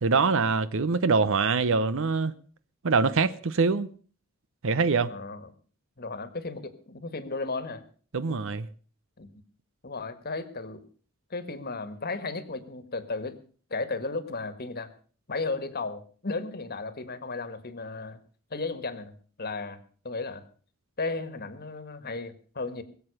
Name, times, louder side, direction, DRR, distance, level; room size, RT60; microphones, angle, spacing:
voice 1, 0.0-2.3 2.8-3.9 4.6-5.1 8.1-8.7, right 4 dB, 65° right, 0.7 m, -24 dB
voice 2, 5.1-5.5 6.0-7.8 9.2-9.3 9.8-10.8 11.3-13.4 13.7-14.9 15.3-18.2 18.5-20.4 21.0-22.8, left 3 dB, 45° left, 1.6 m, -34 dB
21.5 x 7.9 x 6.5 m
head